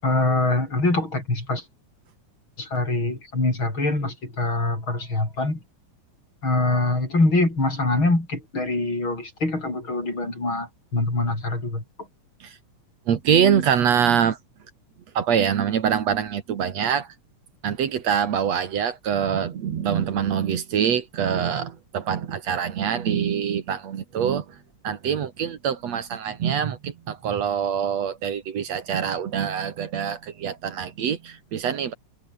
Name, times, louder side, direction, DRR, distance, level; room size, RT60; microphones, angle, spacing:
voice 1, 0.0-1.6 2.6-5.6 6.4-11.8, left 2 dB, 40° left, 8.8 m, -24 dB
voice 2, 13.1-14.4 15.1-17.1 17.6-24.4 24.8-31.9, right 8 dB, 65° right, 2.8 m, -24 dB
omnidirectional pair, 3.3 m